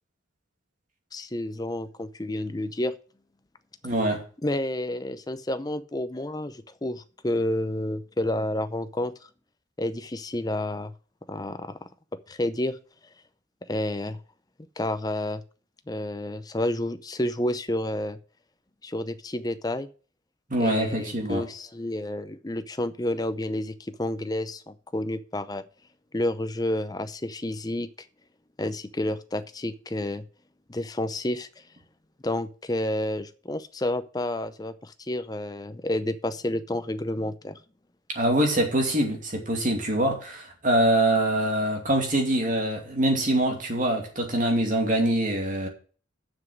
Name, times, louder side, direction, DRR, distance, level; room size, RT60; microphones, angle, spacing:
voice 1, 1.1-2.9 4.4-9.1 9.8-10.9 11.3-11.8 12.3-12.8 13.7-14.2 14.8-15.4 15.9-18.2 18.8-19.9 20.6-25.6 26.1-27.9 28.6-30.2 30.7-31.5 32.2-37.6, left 1 dB, 20° left, 0.6 m, -30 dB
voice 2, 3.8-4.2 20.5-21.4 38.1-45.7, right 1 dB, 40° right, 2.6 m, -24 dB
7.2 x 6.5 x 7.8 m
head